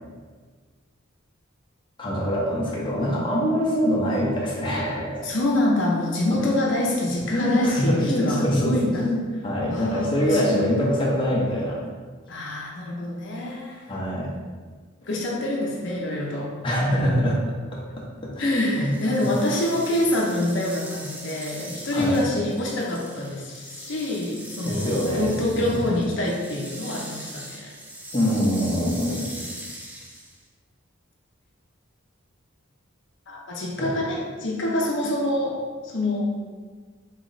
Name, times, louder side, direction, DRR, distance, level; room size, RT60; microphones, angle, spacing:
voice 1, 2.0-5.3 7.3-11.8 13.9-14.3 16.6-17.4 17.7-17.8 18.2-18.9 19.2-19.3 21.9-22.2 24.6-25.8 28.1-29.2 33.8-33.9, equal, 25° left, -5 dB, 0.7 m, -24 dB
voice 2, 5.2-9.1 9.7-10.7 12.3-14.0 15.0-16.5 18.4-27.7 33.3-36.3, left 1 dB, 60° left, -2 dB, 0.7 m, -26 dB
sound 1, 18.8-30.4, right 1 dB, 5° right, 0.5 m, -40 dB
3.9 x 3.1 x 3.9 m, 1.5 s
head